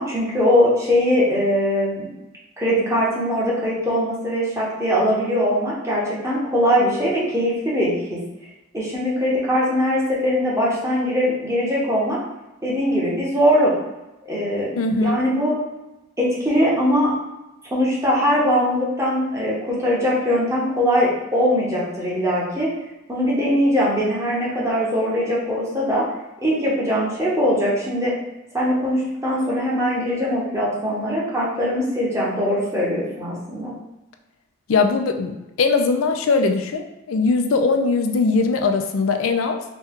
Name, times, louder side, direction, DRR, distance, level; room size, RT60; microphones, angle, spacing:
voice 1, 0.0-2.1 2.6-8.2 8.7-12.2 12.6-13.7 14.3-15.6 16.2-17.1 17.6-22.7 23.1-26.0 26.4-28.1 28.5-33.7, equal, 15° right, -6 dB, 1.0 m, -21 dB
voice 2, 14.8-15.2 34.7-39.6, left 4 dB, 85° left, 5 dB, 0.4 m, -20 dB
4.1 x 2.3 x 3.6 m, 0.98 s
head